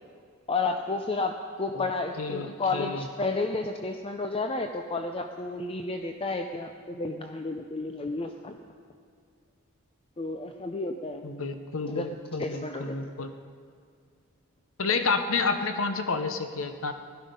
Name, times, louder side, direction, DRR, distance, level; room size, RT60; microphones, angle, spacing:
voice 1, 0.5-8.6 10.2-11.2 11.9-12.1 12.4-13.0, left 3 dB, 25° left, 5 dB, 0.6 m, -31 dB
voice 2, 2.2-3.0 11.2-13.3 14.8-16.9, left 4 dB, 65° left, 8 dB, 0.8 m, -30 dB
17.0 x 12.5 x 5.3 m, 2.2 s
head